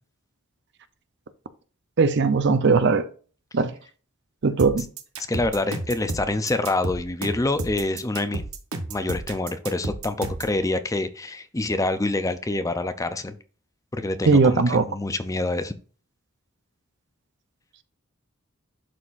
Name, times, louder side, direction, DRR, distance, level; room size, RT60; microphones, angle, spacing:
voice 1, 2.0-3.1 3.5-3.7 4.4-4.9 14.3-14.8, right 4 dB, 55° right, 0.6 m, -19 dB
sound 1, 4.6-10.6, right 2 dB, 80° right, 1.1 m, -32 dB
voice 2, 5.3-8.4 8.9-13.4 13.9-14.6 14.9-15.7, left 2 dB, 15° left, 0.5 m, -26 dB
11.0 x 4.3 x 2.5 m
head